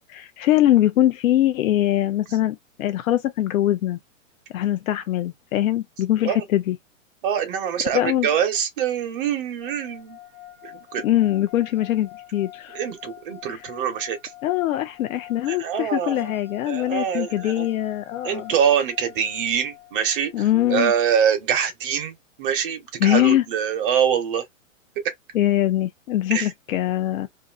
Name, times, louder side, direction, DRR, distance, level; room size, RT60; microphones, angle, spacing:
voice 1, 0.0-4.0 4.5-6.8 7.9-8.3 11.0-12.8 13.5-13.6 14.4-18.5 20.3-20.9 23.0-23.4 25.3-27.3, left 13 dB, 90° left, 0.5 m, -22 dB
voice 2, 7.2-10.2 10.6-11.0 12.7-14.2 15.5-16.3 16.7-17.7 18.2-20.3 20.7-24.4 25.0-25.1 26.3-26.5, right 8 dB, 40° right, 0.8 m, -24 dB
sound 1, 9.6-20.8, left 14 dB, ahead, 0.5 m, -45 dB
2.5 x 2.5 x 2.3 m
hypercardioid pair, 160°, 40 cm